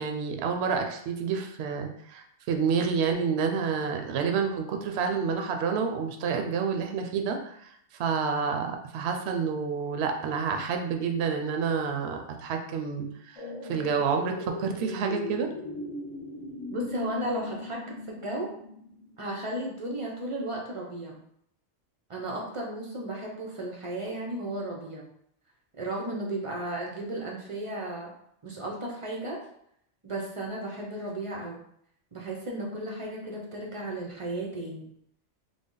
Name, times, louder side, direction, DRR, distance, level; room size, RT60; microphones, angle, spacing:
voice 1, 0.0-7.7 8.0-13.4 13.7-15.5, right 6 dB, 65° right, 4 dB, 0.8 m, -29 dB
sound 1, 13.4-19.5 19.8-19.9, left 2 dB, 45° left, 0.4 m, -38 dB
voice 2, 16.7-18.5 19.2-21.2 22.1-25.1 25.7-28.1 28.4-29.5 30.0-31.6 32.1-34.9, right 1 dB, 40° right, -2 dB, 0.4 m, -34 dB
3.4 x 2.0 x 3.7 m, 0.70 s
omnidirectional pair, 1.2 m